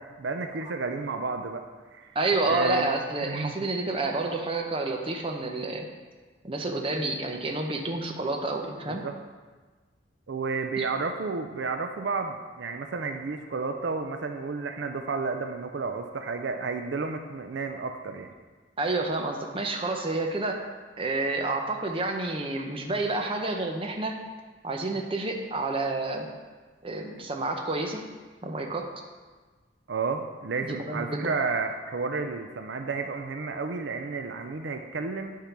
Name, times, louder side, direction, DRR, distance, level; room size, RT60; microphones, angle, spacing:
voice 1, 0.0-1.7 1.9-2.2 2.4-3.5 8.9-9.1 10.3-18.3 29.9-35.4, right 4 dB, 65° right, 5 dB, 0.5 m, -31 dB
voice 2, 2.1-5.9 6.4-9.0 10.8-10.9 18.8-20.6 21.0-24.2 24.6-26.3 26.8-28.0 28.4-28.9 30.7-31.3, right 2 dB, 30° right, 3 dB, 0.7 m, -29 dB
10.0 x 3.8 x 5.8 m, 1.4 s
head